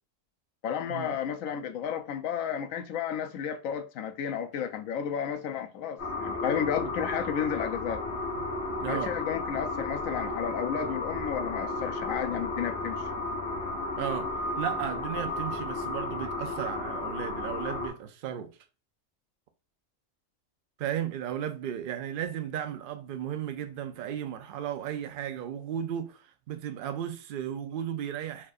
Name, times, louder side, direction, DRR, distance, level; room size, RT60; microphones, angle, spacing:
voice 1, 0.6-8.0 8.9-13.1, left 8 dB, 85° left, 1.0 m, -32 dB
sound 1, 6.0-17.9, left 2 dB, 45° left, 1.7 m, -33 dB
voice 2, 8.4-9.2 14.0-18.6 20.8-28.5, right 10 dB, 60° right, 0.5 m, -35 dB
4.6 x 2.5 x 2.4 m
omnidirectional pair, 1.4 m